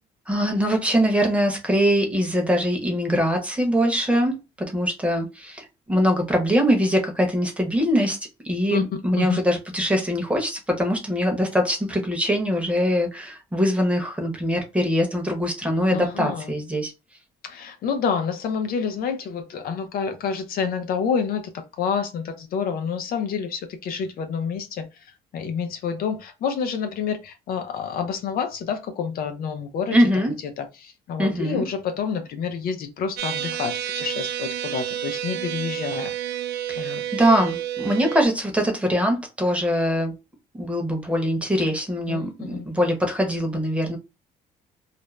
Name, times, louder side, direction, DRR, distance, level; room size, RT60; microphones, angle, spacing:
voice 1, 0.3-8.2 8.4-16.9 29.9-30.3 31.2-31.7 36.7-40.1 40.6-44.0, equal, 5° right, 0.9 m, -22 dB
voice 2, 15.9-16.5 17.4-30.1 30.6-36.1 36.8-37.0 42.1-42.7, left 6 dB, 60° left, 0.5 m, -28 dB
sound 1, 33.2-38.3, right 11 dB, 75° right, 0.4 m, -30 dB
2.5 x 2.0 x 3.0 m
cardioid pair, 110°, 17 cm